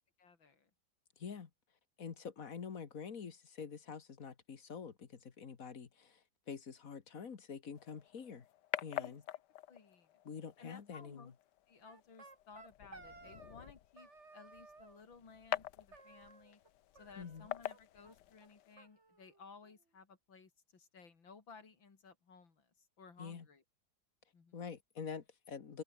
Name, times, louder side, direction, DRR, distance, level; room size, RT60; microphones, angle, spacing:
voice 1, 0.2-0.7 8.9-9.2 9.7-10.1 10.6-11.3 11.7-16.6 16.9-23.6 24.3-24.6, left 5 dB, 90° left, 3.8 m, -58 dB
voice 2, 1.2-1.5 2.0-8.4 8.8-9.2 10.2-11.3 17.2-17.5 23.2-23.4 24.5-25.8, left 6 dB, 50° left, 1.8 m, -46 dB
sound 1, 7.8-18.7, left 13 dB, 70° left, 1.3 m, -47 dB
sound 2, 11.8-13.7 14.0-15.0 15.9-16.7 17.0-17.8 18.0-18.1 18.4-18.5 18.8-19.8, right 3 dB, 35° right, 3.3 m, -58 dB
open air
omnidirectional pair, 2.1 m